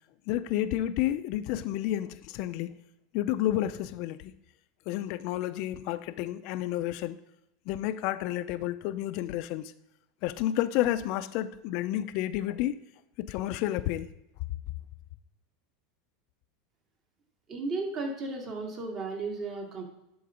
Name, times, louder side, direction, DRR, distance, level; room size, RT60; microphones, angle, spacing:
voice 1, 0.3-2.7 3.1-4.3 4.9-7.2 7.7-9.7 10.2-12.8 13.2-14.1, left 13 dB, 60° left, 0.6 m, -30 dB
voice 2, 17.5-19.8, right 3 dB, 40° right, 2.4 m, -34 dB
11.0 x 3.9 x 5.1 m
supercardioid pair, 115°, 0 cm